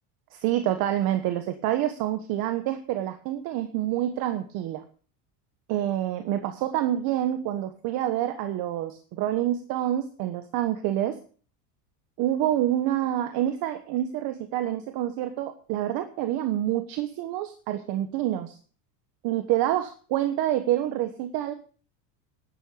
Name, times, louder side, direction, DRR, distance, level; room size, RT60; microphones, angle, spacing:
voice 1, 0.3-4.8 5.7-11.2 12.2-18.6 19.2-21.5, right 12 dB, 50° right, 8 dB, 1.3 m, -27 dB
12.0 x 10.0 x 7.0 m, 0.42 s
cardioid pair, 165°, 46 cm